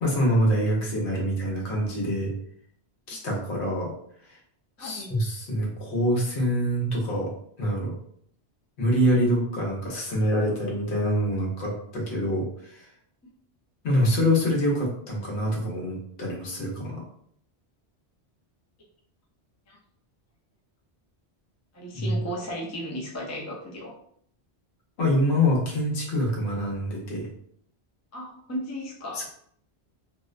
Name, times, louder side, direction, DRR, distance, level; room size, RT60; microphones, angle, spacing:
voice 1, 0.0-2.3 3.1-3.9 4.2-4.4 4.8-7.3 7.6-7.9 8.8-12.9 13.8-17.0 21.9-22.2 25.0-27.3 29.1-29.3, equal, 75° left, -2 dB, 1.0 m, -25 dB
voice 2, 4.8-5.1 19.7-19.8 21.7-23.9 28.1-29.3, equal, 30° left, -4 dB, 0.3 m, -35 dB
2.5 x 2.1 x 2.4 m, 0.65 s
omnidirectional pair, 1.1 m